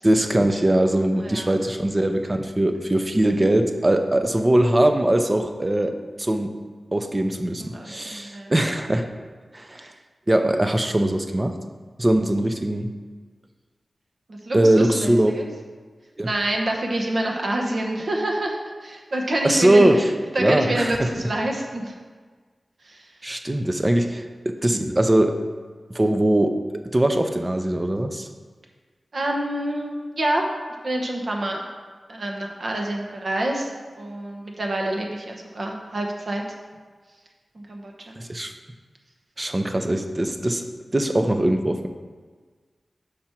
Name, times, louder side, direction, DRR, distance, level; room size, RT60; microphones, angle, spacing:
voice 1, 0.0-6.6 6.9-9.1 9.5-9.9 10.3-11.5 12.0-12.9 14.5-15.4 16.2-16.3 19.4-20.1 20.4-21.1 23.2-25.4 25.9-28.3 38.2-38.5 39.4-40.7 40.9-41.9, right 1 dB, 25° right, 6 dB, 0.5 m, -21 dB
voice 2, 1.2-1.5 7.6-8.5 14.3-15.5 16.2-19.9 20.3-21.9 22.8-23.1 24.8-24.9 29.1-30.5 30.8-31.6 32.1-33.7 34.0-36.4 37.5-38.2, right 1 dB, 60° right, 1 dB, 0.9 m, -27 dB
5.9 x 5.0 x 4.4 m, 1.5 s
wide cardioid pair, 75°, 0 cm